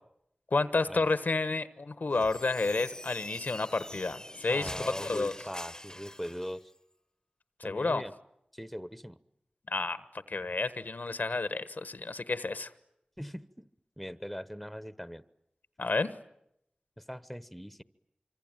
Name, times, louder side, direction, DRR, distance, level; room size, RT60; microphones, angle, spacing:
voice 1, 0.5-4.7 5.0-5.3 7.6-8.0 9.7-10.0 10.3-12.7 15.8-16.1, left 3 dB, 85° left, 13 dB, 1.2 m, -30 dB
sound 1, 2.1-6.6, left 1 dB, 25° left, 1.0 m, -44 dB
voice 2, 4.5-6.7 7.6-8.1 8.5-9.2 13.2-13.7 14.0-15.2 17.0-17.8, equal, ahead, 14 dB, 1.1 m, -41 dB
26.0 x 25.5 x 9.1 m, 0.80 s
wide cardioid pair, 40°, 3 cm